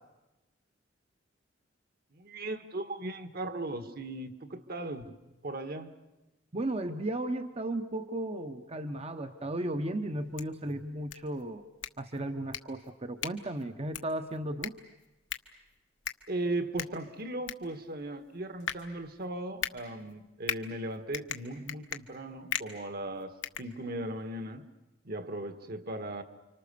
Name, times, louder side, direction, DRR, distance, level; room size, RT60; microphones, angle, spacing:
voice 1, 2.1-5.2 5.4-5.9 16.3-24.6 25.0-26.2, right 2 dB, 55° right, 10 dB, 1.6 m, -37 dB
voice 2, 6.5-11.6 12.0-14.7, right 1 dB, 35° right, 8 dB, 0.9 m, -35 dB
sound 1, 10.1-24.3, left 8 dB, 75° left, 1.3 m, -41 dB
30.0 x 25.5 x 6.9 m, 1.0 s
head